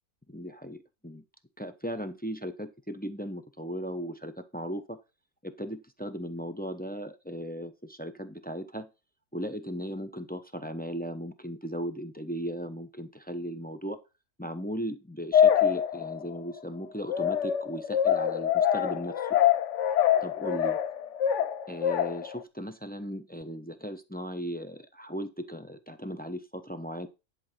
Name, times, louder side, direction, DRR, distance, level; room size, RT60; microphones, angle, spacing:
voice 1, 0.3-1.2 1.6-5.0 5.4-8.9 9.3-14.0 14.4-19.4 20.2-20.7 21.7-27.1, equal, 10° left, 7 dB, 0.6 m, -37 dB
sound 1, 15.3-16.4 17.1-22.4, left 9 dB, 60° left, 0.9 m, -25 dB
11.0 x 4.7 x 5.6 m, 0.27 s
omnidirectional pair, 1.6 m